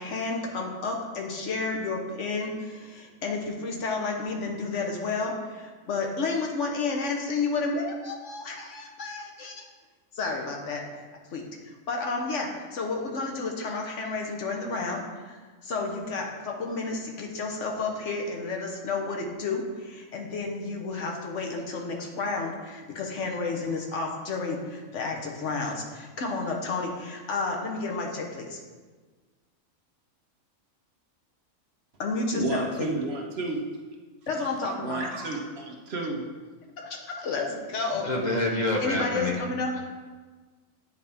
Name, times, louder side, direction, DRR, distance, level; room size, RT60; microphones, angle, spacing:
voice 1, 0.0-9.6 10.1-10.8 11.3-28.6 32.0-32.9 34.3-35.0 36.8-38.1 38.8-39.7, left 3 dB, 65° left, 1 dB, 1.2 m, -31 dB
voice 2, 32.3-33.6 34.8-36.3, right 2 dB, 55° right, 0 dB, 1.0 m, -31 dB
voice 3, 38.0-39.4 39.7-39.8, left 2 dB, 40° left, -1 dB, 0.8 m, -27 dB
9.3 x 4.1 x 3.4 m, 1.4 s
omnidirectional pair, 1.4 m